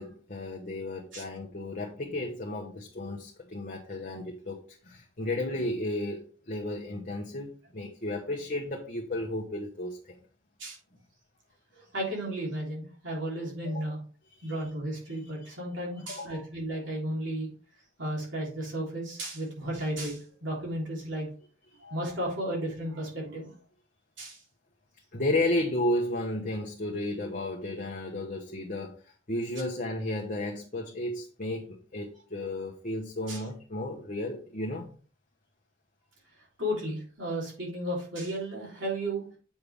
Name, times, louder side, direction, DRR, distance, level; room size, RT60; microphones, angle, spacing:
voice 1, 0.0-10.2 13.6-13.8 14.4-14.6 16.1-16.3 25.1-34.9, left 1 dB, 40° left, 1.0 m, -33 dB
voice 2, 11.7-14.0 14.4-17.5 18.0-21.3 21.8-23.5 24.2-24.4 33.3-33.4 36.6-39.3, right 1 dB, 65° right, 3.5 m, -34 dB
8.1 x 5.7 x 3.6 m
head